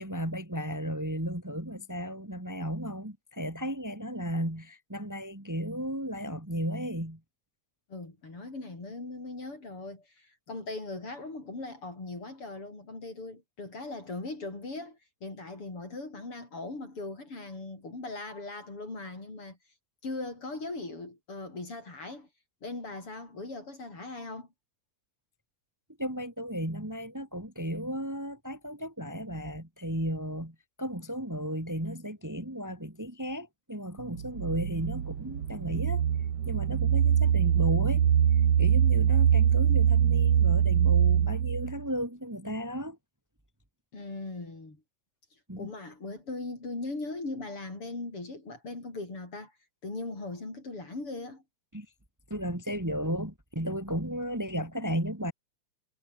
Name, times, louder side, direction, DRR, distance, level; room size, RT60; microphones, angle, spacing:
voice 1, 0.0-7.2 26.0-36.0 36.5-38.1 38.6-43.0 45.5-45.7 51.7-51.9 52.3-55.3, equal, 5° right, 3.5 m, -34 dB
voice 2, 7.9-19.6 20.0-22.3 22.6-24.5 43.9-44.8 45.6-49.5 49.8-51.4, left 2 dB, 45° left, 7.7 m, -39 dB
sound 1, 34.0-41.8, right 8 dB, 55° right, 2.7 m, -24 dB
omnidirectional pair, 3.4 m